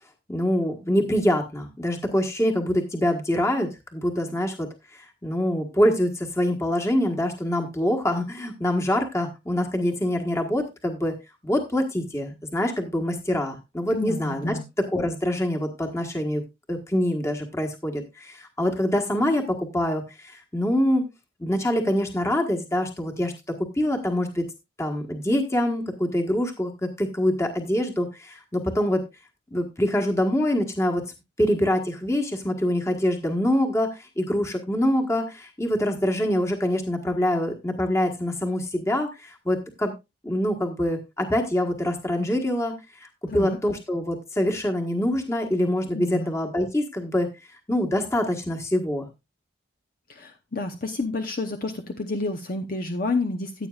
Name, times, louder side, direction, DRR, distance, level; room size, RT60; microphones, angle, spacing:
voice 1, 0.3-11.1 11.4-16.4 16.7-21.0 21.4-23.3 23.7-24.4 24.8-29.0 29.5-31.0 31.4-39.9 40.2-42.7 43.0-47.3 47.7-49.1, left 1 dB, 15° left, 2 dB, 1.4 m, -25 dB
voice 2, 13.9-14.6 43.3-43.6 45.9-46.3 50.1-53.7, left 2 dB, 45° left, 5 dB, 0.8 m, -29 dB
14.5 x 8.7 x 2.4 m, 0.24 s
head